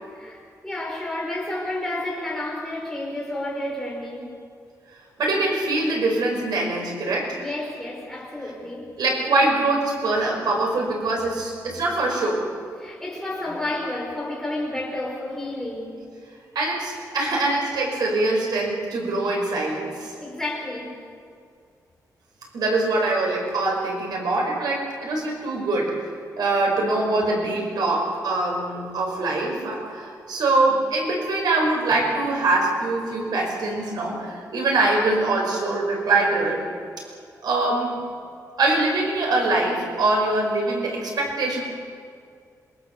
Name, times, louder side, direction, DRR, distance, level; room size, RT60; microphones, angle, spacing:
voice 1, 0.1-4.3 7.4-8.9 11.7-11.8 12.8-16.1 20.2-21.0, left 1 dB, 5° left, -3 dB, 5.5 m, -31 dB
voice 2, 5.2-7.5 9.0-12.4 16.6-20.1 22.5-26.1 26.4-36.7 37.4-38.0 38.6-41.6, right 2 dB, 85° right, 0 dB, 5.2 m, -23 dB
27.0 x 20.0 x 7.0 m, 2.3 s
wide cardioid pair, 150°, 7 cm